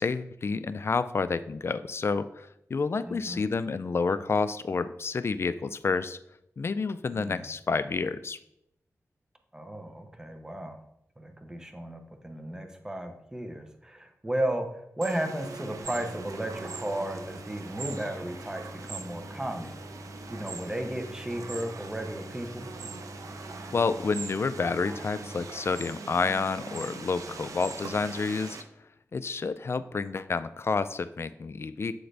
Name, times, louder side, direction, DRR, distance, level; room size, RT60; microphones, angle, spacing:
voice 1, 0.0-6.2 6.6-8.4 23.7-28.6 29.1-31.9, left 4 dB, 50° left, 13 dB, 0.3 m, -29 dB
voice 2, 3.1-3.5 7.1-7.5 9.5-10.8 11.2-19.8 20.3-22.7, right 1 dB, 10° right, 5 dB, 0.8 m, -34 dB
sound 1, 15.0-28.6, right 4 dB, 85° right, 0.5 m, -42 dB
Idling, 15.8-25.4, left 1 dB, 65° right, 2.5 m, -46 dB
7.8 x 3.8 x 3.3 m, 0.77 s
cardioid pair, 65°, 6 cm